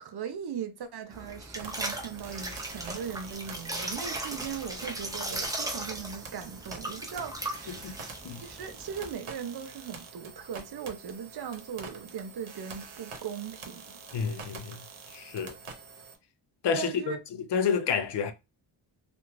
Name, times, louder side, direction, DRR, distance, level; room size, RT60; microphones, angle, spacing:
voice 1, 0.0-7.8 8.4-13.8 16.8-17.2, right 7 dB, 55° right, 0.6 m, -39 dB
sound 1, 1.1-9.1, right 1 dB, 10° right, 0.4 m, -37 dB
sound 2, 1.6-16.2, right 4 dB, 85° right, 0.9 m, -46 dB
voice 2, 14.1-14.8 15.1-15.5 16.6-18.3, left 6 dB, 60° left, 0.5 m, -29 dB
2.5 x 2.3 x 3.0 m
wide cardioid pair, 155°, 48 cm